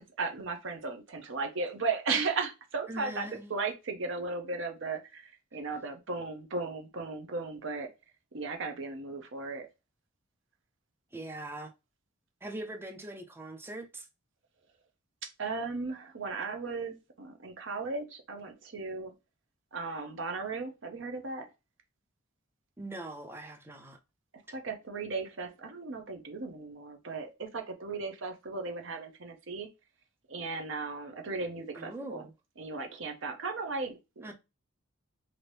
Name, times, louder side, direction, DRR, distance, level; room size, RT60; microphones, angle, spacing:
voice 1, 0.0-7.9 8.3-9.7 15.2-19.1 19.7-21.5 24.5-29.7 30.3-32.3 32.6-34.3, right 4 dB, 60° right, 0.7 m, -36 dB
voice 2, 2.9-3.5 11.1-11.7 12.4-14.1 22.8-24.0 24.5-24.6 31.7-32.3 34.2-34.3, right 1 dB, 10° right, 0.4 m, -42 dB
2.9 x 2.6 x 3.2 m
head